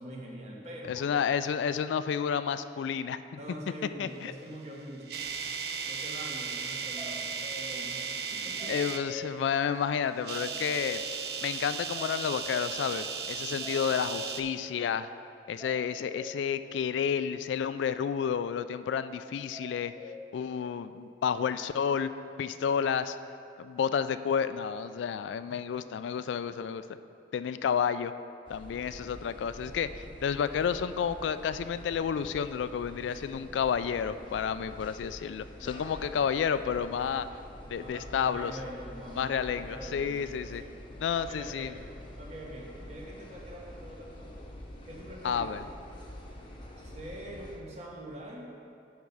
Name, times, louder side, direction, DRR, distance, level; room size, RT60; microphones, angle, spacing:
voice 1, 0.0-1.2 3.4-5.1 5.8-8.9 35.6-36.2 37.7-40.8 41.1-41.8 42.2-44.4 44.8-45.5 46.8-48.4, equal, 40° right, -2 dB, 1.3 m, -44 dB
voice 2, 0.9-3.2 4.0-4.3 8.7-11.0 11.4-15.1 15.5-19.9 20.3-22.1 22.4-23.2 23.6-26.8 27.3-28.1 28.5-37.3 37.7-38.5 39.2-40.6 41.0-41.7 45.2-45.6, left 7 dB, 80° left, 12 dB, 0.3 m, -30 dB
sound 1, 4.6-9.0 10.1-14.4, right 6 dB, 60° right, 0.5 m, -36 dB
sound 2, 7.0-7.7 8.6-9.2 10.4-11.1 11.9-12.7 13.6-14.3 15.6-16.2 19.5-20.2, left 2 dB, 20° right, 1.5 m, -44 dB
sound 3, 28.5-47.6, left 1 dB, 30° left, 0.8 m, -47 dB
9.6 x 4.5 x 5.4 m, 2.5 s
head